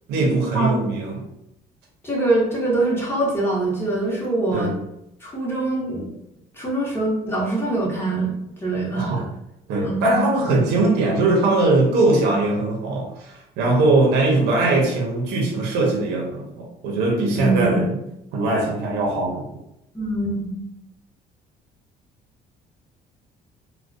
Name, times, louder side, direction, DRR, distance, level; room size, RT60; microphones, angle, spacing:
voice 1, 0.1-1.2 4.5-4.8 8.9-9.2 9.7-17.9 18.3-19.5, right 2 dB, 85° right, -1 dB, 0.6 m, -20 dB
voice 2, 2.0-4.7 5.2-6.1 6.5-9.1 9.8-10.1 17.3-17.9 19.9-20.5, right 2 dB, 15° left, -5 dB, 0.8 m, -23 dB
2.3 x 2.1 x 2.5 m, 0.82 s
cardioid pair, 110°, 17 cm